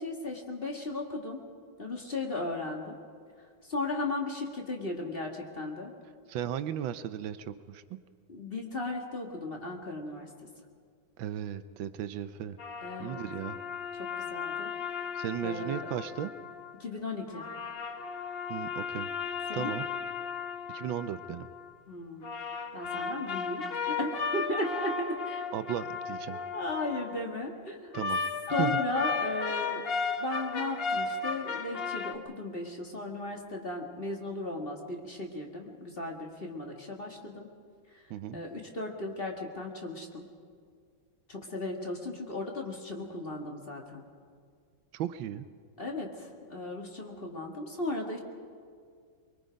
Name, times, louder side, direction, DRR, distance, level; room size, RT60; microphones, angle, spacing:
voice 1, 0.0-1.4 1.8-3.0 3.6-5.9 8.3-10.3 12.8-13.2 14.0-14.7 15.4-16.0 16.8-17.5 19.5-19.7 21.9-22.2 22.7-25.4 26.3-28.0 28.5-29.8 30.2-37.5 38.3-40.2 41.3-44.0 45.8-48.2, left 2 dB, 30° left, 1 dB, 2.0 m, -36 dB
voice 2, 6.3-8.0 11.2-12.6 13.0-13.6 15.1-16.3 18.5-19.1 19.5-19.9 20.7-21.5 25.5-26.4 27.9-28.2 28.6-28.7 38.1-38.4 44.9-45.5, right 10 dB, 80° right, 12 dB, 1.4 m, -35 dB
sound 1, 12.6-16.7 17.3-21.7 22.2-27.3 27.9-32.1, left 5 dB, 50° left, 0.7 m, -35 dB
23.5 x 22.5 x 5.2 m, 2.1 s
omnidirectional pair, 2.1 m